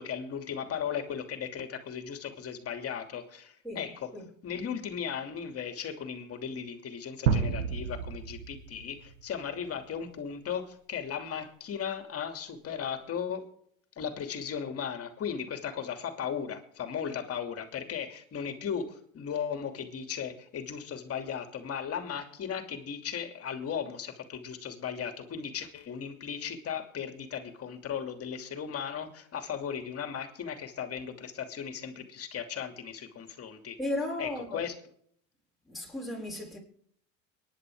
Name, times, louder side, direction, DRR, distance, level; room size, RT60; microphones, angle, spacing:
voice 1, 0.0-4.1 4.4-13.4 14.0-33.8 34.2-34.7, left 7 dB, 40° left, 2.8 m, -36 dB
voice 2, 3.6-4.3 33.8-34.7 35.6-36.6, left 1 dB, ahead, 6.3 m, -35 dB
sound 1, 7.3-9.2, right 7 dB, 85° right, 1.7 m, -30 dB
23.5 x 10.5 x 3.7 m
supercardioid pair, 95°, 38 cm